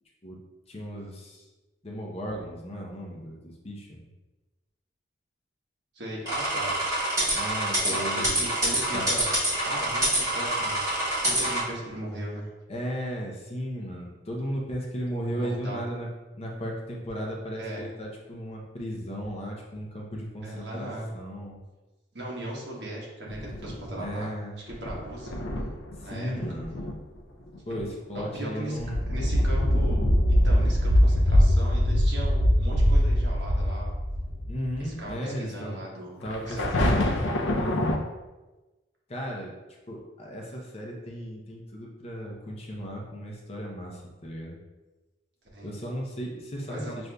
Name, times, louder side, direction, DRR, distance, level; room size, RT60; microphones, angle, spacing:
voice 1, 0.7-1.4 1.8-4.0 7.3-8.4 8.9-9.0 12.7-16.1 16.3-20.9 21.1-21.6 24.0-24.5 26.0-26.9 27.7-29.0 34.5-35.8 36.2-37.2 37.6-38.0 39.1-39.5 39.9-44.6 45.6-46.9, equal, 30° left, -1 dB, 0.6 m, -35 dB
voice 2, 5.9-6.7 7.8-9.3 9.6-10.8 11.2-12.5 15.4-15.8 17.6-17.8 20.4-21.1 22.1-24.3 24.8-25.4 26.0-26.3 28.1-28.8 29.1-30.0 30.3-33.9 34.8-37.0 45.5-45.7 46.7-46.9, right 1 dB, 60° right, -4 dB, 1.1 m, -37 dB
sound 1, 6.3-11.6, right 1 dB, 20° right, 1.5 m, -26 dB
sound 2, 23.3-24.0 24.7-26.0 26.4-27.0 27.6-27.8 28.2-28.4 28.8-34.8 35.1-35.2 36.3-38.0, equal, 75° left, 0.5 m, -23 dB
6.4 x 2.5 x 2.2 m, 1.1 s
head